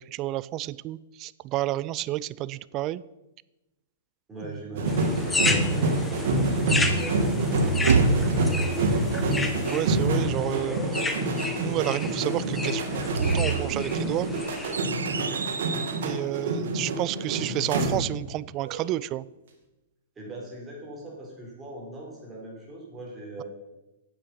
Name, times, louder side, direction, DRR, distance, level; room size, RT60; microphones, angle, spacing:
voice 1, 0.0-3.0 4.9-5.1 9.7-10.8 11.3-14.3 16.0-19.2, right 15 dB, 35° right, 20 dB, 0.3 m, -30 dB
voice 2, 4.3-8.9 15.1-15.5 20.2-23.4, right 2 dB, 15° right, -2 dB, 4.1 m, -41 dB
sound 1, 4.8-18.3 18.6-18.9, right 2 dB, 65° right, 2.0 m, -27 dB
sound 2, 4.9-14.8, left 2 dB, 10° left, 1.0 m, -32 dB
sound 3, 7.2-8.7 12.8-16.1, right 5 dB, 90° right, 0.7 m, -28 dB
8.9 x 8.0 x 5.7 m, 1.0 s
hypercardioid pair, 125°, 0 cm